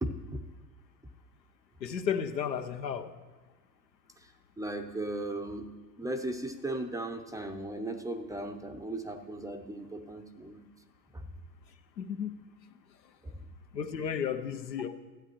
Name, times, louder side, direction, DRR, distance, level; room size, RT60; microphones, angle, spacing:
voice 1, 0.0-0.4 4.2-5.7 6.0-10.7 11.1-11.3, right 1 dB, 5° right, 5 dB, 0.5 m, -37 dB
voice 2, 1.8-3.1 12.0-12.3 13.7-14.9, left 7 dB, 90° left, 8 dB, 0.8 m, -33 dB
13.5 x 8.7 x 3.0 m, 1.3 s
hypercardioid pair, 85°, 49 cm